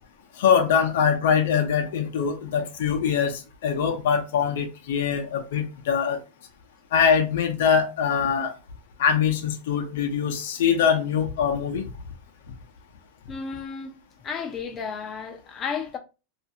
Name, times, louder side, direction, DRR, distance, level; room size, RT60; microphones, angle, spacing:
voice 1, 0.4-3.3 3.6-6.2 6.9-8.5 9.0-11.9, left 7 dB, 75° left, 0.6 m, -23 dB
voice 2, 13.3-14.0 14.2-16.0, left 6 dB, 30° left, 0.4 m, -33 dB
2.4 x 2.4 x 2.7 m
hypercardioid pair, 120°, 0 cm